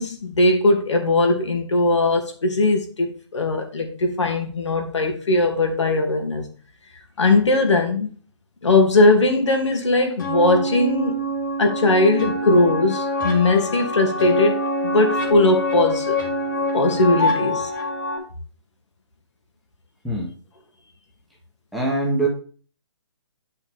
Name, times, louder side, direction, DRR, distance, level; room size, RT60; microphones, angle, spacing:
voice 1, 0.0-6.5 7.2-8.1 8.6-11.3 11.6-16.2 16.7-17.7, left 2 dB, 75° left, 2.6 m, -19 dB
sound 1, 10.2-18.2, left 1 dB, 40° left, 2.9 m, -25 dB
voice 2, 21.7-22.3, right 2 dB, ahead, 1.0 m, -23 dB
9.7 x 5.7 x 3.6 m
hypercardioid pair, 165°, 15 cm